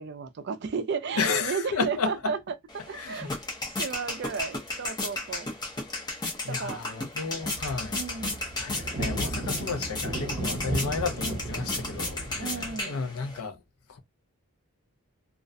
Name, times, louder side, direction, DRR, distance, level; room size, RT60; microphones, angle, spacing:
voice 1, 0.0-3.3 3.7-5.5 6.5-6.8 7.9-8.4 12.4-13.0, right 5 dB, 50° right, 0.4 m, -34 dB
voice 2, 1.2-2.3 2.9-3.3 6.4-8.0 8.6-13.6 13.9-14.0, left 5 dB, 75° left, 0.5 m, -32 dB
sound 1, 2.7-13.4, left 2 dB, 20° left, 0.6 m, -34 dB
sound 2, 7.4-12.7, right 2 dB, 30° right, 0.8 m, -35 dB
2.4 x 2.1 x 2.5 m
head